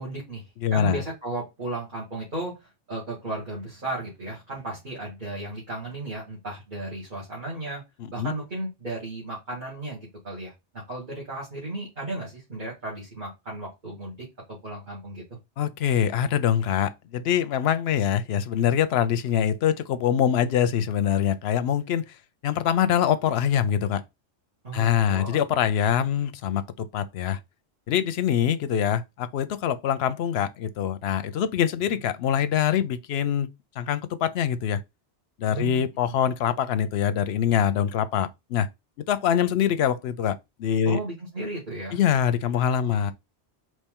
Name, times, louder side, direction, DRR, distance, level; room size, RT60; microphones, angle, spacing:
voice 1, 0.0-7.8 8.1-14.3 14.6-15.2 24.6-25.4 35.5-36.2 40.9-42.0 42.8-43.1, right 2 dB, 40° right, 2.0 m, -35 dB
voice 2, 0.6-1.0 8.2-8.3 15.6-22.0 22.4-24.0 24.7-27.4 27.9-33.5 33.8-34.8 35.4-38.7 39.1-41.0 41.9-43.1, left 9 dB, 65° left, 0.8 m, -24 dB
4.3 x 3.1 x 3.6 m
omnidirectional pair, 1.2 m